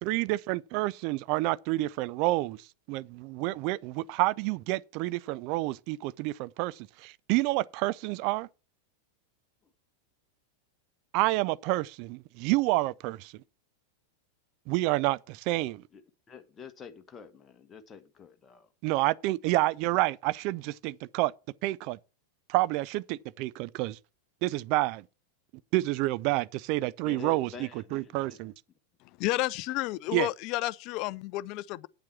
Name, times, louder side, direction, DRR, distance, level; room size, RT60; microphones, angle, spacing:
voice 1, 0.0-2.6 2.9-8.5 11.1-13.3 14.7-15.8 18.8-21.3 21.6-22.0 22.5-24.0 24.4-25.0 25.7-28.5 30.1-30.3, right 19 dB, 45° right, 0.4 m, -29 dB
voice 2, 16.3-18.7 27.0-28.4, left 6 dB, 20° left, 1.3 m, -47 dB
voice 3, 29.2-31.9, left 18 dB, 40° left, 0.5 m, -31 dB
9.0 x 7.5 x 5.8 m
figure-of-eight pair, 90°, 0 cm